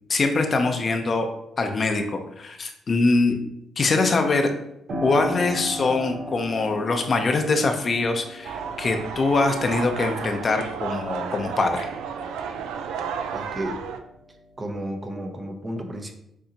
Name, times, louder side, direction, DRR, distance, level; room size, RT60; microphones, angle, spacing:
voice 1, 0.1-1.3 1.6-3.4 3.8-4.5 5.0-11.9, left 3 dB, 40° left, 5 dB, 0.6 m, -23 dB
Piano, 4.9-13.3 13.7-14.8, left 1 dB, 55° right, 0.9 m, -37 dB
sound 1, 8.4-14.0, right 6 dB, 90° right, 0.4 m, -32 dB
voice 2, 13.3-13.8 14.6-16.1, equal, 25° right, 4 dB, 0.7 m, -32 dB
6.6 x 2.8 x 2.8 m, 0.79 s
cardioid pair, 90°, 0 cm